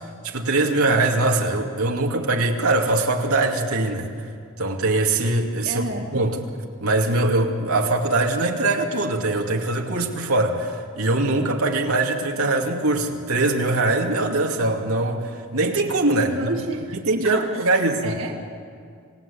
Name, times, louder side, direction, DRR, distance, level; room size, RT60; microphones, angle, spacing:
voice 1, 0.2-4.1 4.6-5.8 6.1-6.4 6.8-16.3 17.1-18.0, right 2 dB, 90° right, 1 dB, 2.5 m, -22 dB
voice 2, 5.6-6.1 16.2-17.0 17.2-18.4, right 2 dB, 65° right, 0 dB, 2.1 m, -30 dB
27.5 x 18.0 x 8.6 m, 2.2 s
head